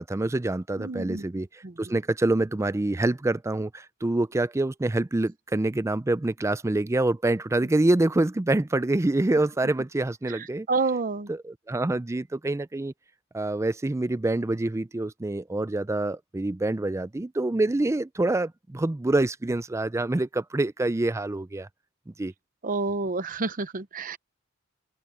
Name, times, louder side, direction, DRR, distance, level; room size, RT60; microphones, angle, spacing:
voice 1, 0.0-10.7 11.3-12.9 13.3-21.7 22.2-22.3, right 2 dB, 15° right, 0.4 m, -26 dB
voice 2, 0.8-1.2 1.6-1.9 9.6-9.7 10.3-11.3 22.6-24.2, right 3 dB, 40° right, 0.7 m, -29 dB
open air
head